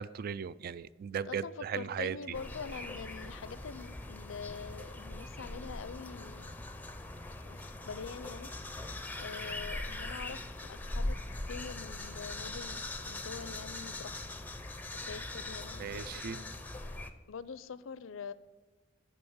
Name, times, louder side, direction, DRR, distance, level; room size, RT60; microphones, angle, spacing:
voice 1, 0.0-2.2 15.8-16.4, right 7 dB, 50° right, 0.3 m, -37 dB
voice 2, 1.3-6.5 7.5-8.5 9.2-11.2 11.5-14.4 14.9-16.5 17.3-18.3, left 5 dB, 90° left, 0.5 m, -45 dB
sound 1, 2.3-17.1, left 2 dB, 10° left, 0.6 m, -41 dB
9.8 x 5.3 x 7.1 m
head